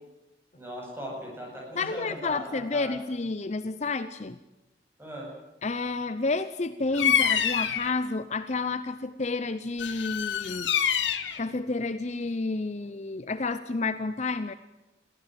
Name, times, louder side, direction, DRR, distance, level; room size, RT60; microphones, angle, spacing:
voice 1, 0.6-3.0 5.0-5.3, equal, 15° right, -2 dB, 7.7 m, -39 dB
voice 2, 1.7-4.4 5.6-10.7 11.4-14.5, left 3 dB, 40° left, 12 dB, 0.6 m, -30 dB
Bird vocalization bird call bird song, 6.9-7.9 9.8-11.4, left 8 dB, 80° left, 1.4 m, -26 dB
22.5 x 15.0 x 9.3 m, 0.99 s
head